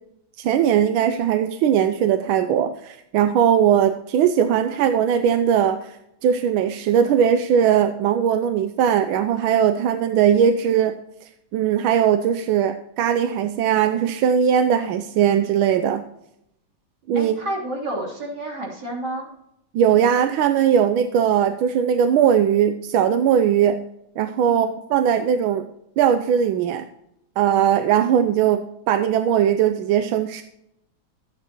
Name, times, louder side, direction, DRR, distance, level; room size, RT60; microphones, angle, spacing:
voice 1, 0.4-6.0 6.2-11.0 11.5-16.0 17.1-17.4 19.7-23.8 24.2-25.6 26.0-26.8 27.4-30.4, right 9 dB, 85° right, 8 dB, 1.4 m, -19 dB
voice 2, 17.1-19.3 24.5-24.7, right 1 dB, 50° right, -3 dB, 3.8 m, -30 dB
13.0 x 9.3 x 2.9 m, 0.79 s
omnidirectional pair, 2.2 m